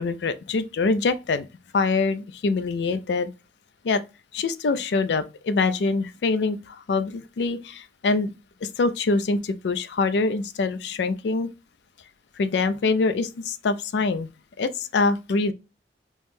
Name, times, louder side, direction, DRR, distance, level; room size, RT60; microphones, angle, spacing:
voice 1, 0.0-1.5 1.7-3.3 3.8-4.0 4.3-8.3 8.6-11.5 12.4-14.3 14.6-15.5, left 3 dB, 70° left, 0.4 m, -24 dB
3.6 x 3.0 x 2.6 m
head